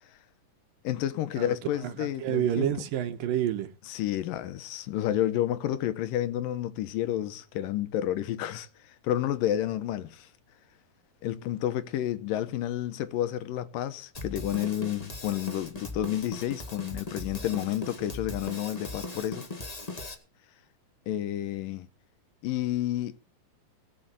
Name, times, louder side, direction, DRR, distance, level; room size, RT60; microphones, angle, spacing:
voice 1, 0.8-2.7 3.9-10.3 11.2-19.5 21.1-21.9 22.4-23.2, left 12 dB, 80° left, 2.6 m, -30 dB
voice 2, 1.8-3.7, right 11 dB, 80° right, 2.9 m, -29 dB
Drum kit, 14.1-20.1, left 2 dB, 25° left, 0.8 m, -39 dB
18.5 x 6.5 x 7.4 m
omnidirectional pair, 4.0 m